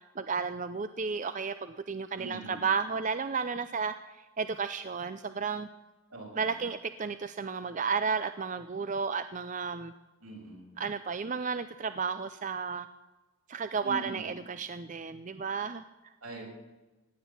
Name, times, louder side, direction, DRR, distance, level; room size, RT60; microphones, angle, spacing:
voice 1, 0.2-4.0 4.4-5.7 6.4-9.9 10.8-12.9 13.5-15.8, right 5 dB, 35° right, 11 dB, 0.4 m, -33 dB
voice 2, 2.2-2.7 6.1-6.5 10.2-10.8 13.8-14.3 16.2-16.4, right 1 dB, 80° right, -2 dB, 6.7 m, -43 dB
17.0 x 10.0 x 7.3 m, 1.1 s
head